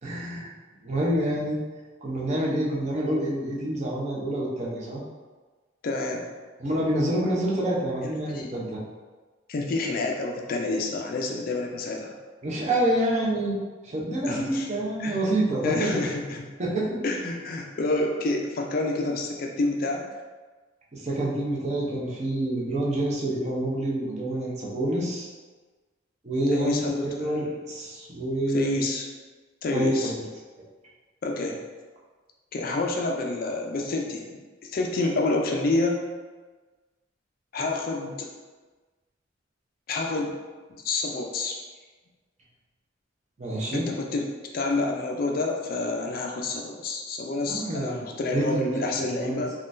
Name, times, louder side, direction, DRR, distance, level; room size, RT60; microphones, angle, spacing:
voice 1, 0.0-0.5 0.8-1.6 2.0-5.0 6.6-8.8 12.4-13.6 13.8-15.9 16.6-17.0 20.9-25.3 26.2-26.8 27.0-28.8 29.7-30.2 43.4-43.9 47.5-48.0 48.3-49.4, right 1 dB, 35° right, -5 dB, 0.6 m, -27 dB
voice 2, 5.8-6.3 7.3-7.4 8.0-8.5 9.5-12.1 14.2-14.7 15.0-15.2 15.6-16.5 17.0-20.0 26.5-27.6 28.5-29.1 29.6-30.1 31.2-31.6 32.5-36.0 37.5-38.3 39.9-40.3 40.8-41.6 43.7-44.2 44.5-49.5, left 2 dB, 50° left, 1 dB, 0.4 m, -28 dB
3.7 x 2.3 x 2.5 m, 1.3 s
head